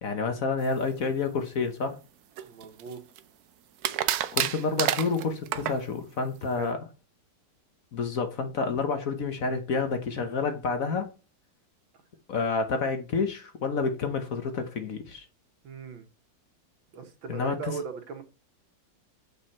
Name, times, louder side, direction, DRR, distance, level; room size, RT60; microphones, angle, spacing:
voice 1, 0.0-2.0 4.3-6.8 7.9-11.1 12.3-15.2 17.3-17.7, left 4 dB, 50° left, 1.3 m, -29 dB
sound 1, 2.4-3.2 3.8-5.8, right 11 dB, 70° right, 1.0 m, -29 dB
voice 2, 2.4-3.0 6.6-6.8 15.6-16.1 16.9-18.2, right 5 dB, 85° right, 2.2 m, -38 dB
8.1 x 5.6 x 4.3 m
omnidirectional pair, 2.1 m